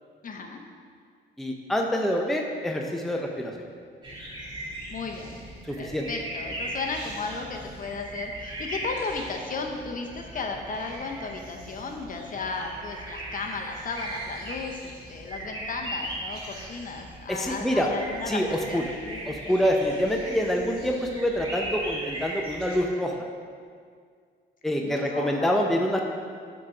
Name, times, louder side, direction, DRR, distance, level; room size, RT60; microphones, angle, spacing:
voice 1, 0.2-0.6 4.9-5.4 5.8-18.4 18.7-19.7 20.5-20.7 24.8-25.6, left 4 dB, 45° left, 3 dB, 0.8 m, -35 dB
voice 2, 1.4-3.5 5.7-6.1 17.3-17.9 18.3-18.8 19.3-23.1 24.6-26.0, equal, ahead, 1 dB, 0.6 m, -26 dB
sound 1, 4.0-22.8, right 1 dB, 25° right, 1.8 m, -38 dB
8.6 x 3.8 x 4.8 m, 2.1 s
cardioid pair, 90°, 20 cm